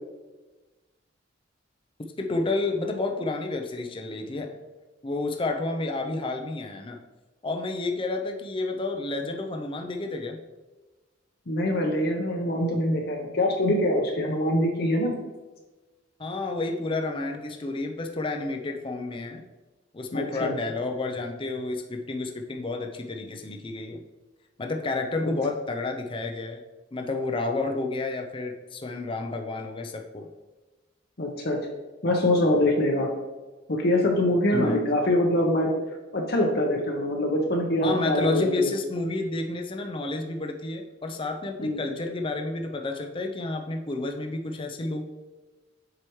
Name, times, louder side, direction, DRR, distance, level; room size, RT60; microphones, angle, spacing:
voice 1, 2.2-4.6 5.0-7.0 7.4-10.4 16.2-19.4 19.9-24.0 24.6-26.6 26.9-30.3 34.5-34.9 37.8-45.0, left 2 dB, 25° left, 4 dB, 0.5 m, -30 dB
voice 2, 11.5-15.2 20.1-20.5 25.2-25.3 31.2-31.6 32.0-33.1 33.7-35.7 36.1-38.7 41.6-41.8, left 1 dB, 55° left, 0 dB, 0.8 m, -24 dB
7.6 x 4.8 x 3.1 m, 1.2 s
head